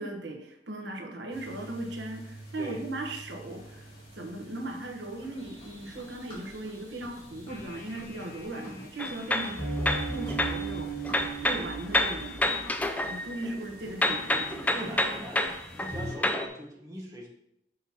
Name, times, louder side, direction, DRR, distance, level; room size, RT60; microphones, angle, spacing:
voice 1, 0.0-3.9 4.1-9.7 10.1-11.1 11.4-12.6 13.0-14.9, right 2 dB, 85° right, 2 dB, 1.1 m, -38 dB
sound 1, 1.3-16.1, right 2 dB, 60° left, 2.3 m, -41 dB
Run, 5.1-15.7, left 1 dB, 30° left, 2.5 m, -51 dB
sound 2, 9.0-10.7 11.0-13.7 14.0-16.5, left 1 dB, 10° left, 0.3 m, -29 dB
voice 2, 14.7-15.4 15.8-17.3, equal, 20° right, -2 dB, 1.2 m, -42 dB
6.4 x 5.7 x 2.9 m, 0.78 s
head